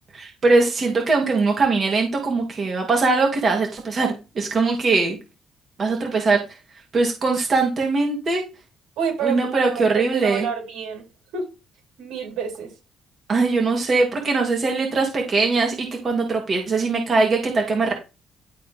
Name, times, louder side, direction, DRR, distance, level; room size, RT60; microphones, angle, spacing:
voice 1, 0.1-5.2 5.8-6.4 6.9-8.4 9.2-10.5 13.3-17.9, right 3 dB, 40° right, 2.8 m, -21 dB
voice 2, 9.0-11.1 11.3-11.5 12.0-12.7, right 6 dB, 85° right, 4.2 m, -28 dB
12.0 x 4.3 x 3.6 m
cardioid pair, 95°, 0 cm